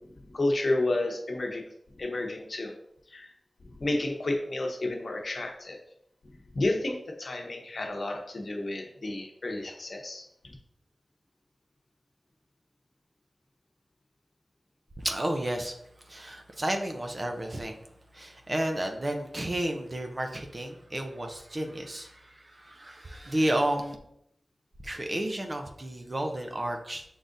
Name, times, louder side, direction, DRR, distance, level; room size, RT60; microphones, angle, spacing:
voice 1, 0.3-1.6 2.0-2.7 3.1-3.3 3.8-5.8 6.5-10.5, left 2 dB, 65° left, 2 dB, 0.9 m, -31 dB
voice 2, 15.0-15.8 16.0-17.8 18.1-24.0 24.8-27.0, right 1 dB, 40° right, 4 dB, 0.7 m, -32 dB
5.4 x 3.8 x 2.6 m, 0.73 s
cardioid pair, 40°, 0 cm